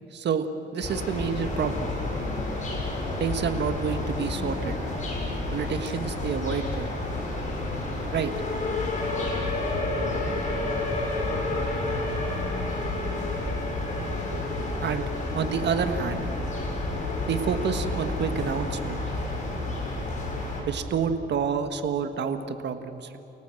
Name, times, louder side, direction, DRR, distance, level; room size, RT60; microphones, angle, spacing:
voice 1, 0.1-0.5 0.7-1.9 3.2-4.8 5.5-6.9 8.1-8.3 14.8-15.1 15.3-16.3 17.3-19.0 20.7-23.2, right 6 dB, 60° right, 8 dB, 1.6 m, -28 dB
sound 1, 0.8-20.6, left 2 dB, 40° left, 7.4 m, -30 dB
29.5 x 18.0 x 7.8 m, 2.9 s
cardioid pair, 90°, 20 cm